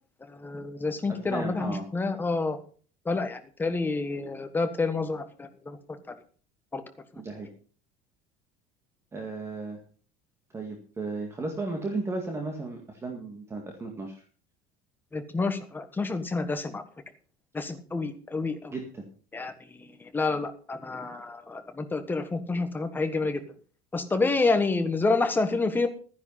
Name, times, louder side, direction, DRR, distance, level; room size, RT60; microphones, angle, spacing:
voice 1, 0.3-2.6 3.0-5.8 6.7-6.8 15.1-16.8 17.5-18.7 19.3-23.4 23.9-25.9, left 3 dB, 10° left, 7 dB, 1.5 m, -28 dB
voice 2, 1.1-1.8 7.2-7.5 9.1-9.8 10.5-14.2 18.7-19.0, right 3 dB, 15° right, 3 dB, 2.0 m, -35 dB
14.0 x 10.5 x 5.7 m, 0.42 s
cardioid pair, 165°, 18 cm